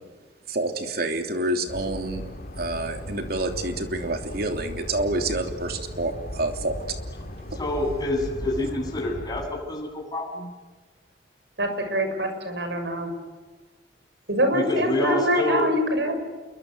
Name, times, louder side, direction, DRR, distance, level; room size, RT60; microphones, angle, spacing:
voice 1, 0.5-2.2 2.6-6.8, right 2 dB, 60° right, 5 dB, 3.2 m, -28 dB
sound 1, 1.7-9.5, equal, 50° left, 3.4 m, -37 dB
voice 2, 7.5-10.5 14.5-15.7, left 2 dB, 25° left, 0 dB, 7.9 m, -27 dB
voice 3, 11.6-13.1 14.3-16.2, equal, 80° right, 6 dB, 6.5 m, -24 dB
28.5 x 23.0 x 8.1 m, 1.3 s
head